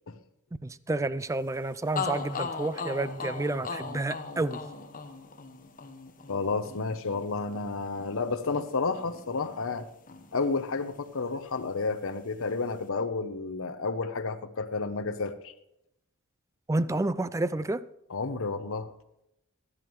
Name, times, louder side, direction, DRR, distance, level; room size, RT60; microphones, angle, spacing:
voice 1, 0.6-4.6 16.7-17.8, right 2 dB, 15° right, 0.4 m, -30 dB
sound 1, 1.5-1.6 2.0-9.8 10.1-11.2, left 5 dB, 40° left, 1.2 m, -39 dB
voice 2, 6.3-9.9 10.3-15.5 18.1-18.9, left 4 dB, 65° left, 0.9 m, -31 dB
16.0 x 11.0 x 3.2 m
head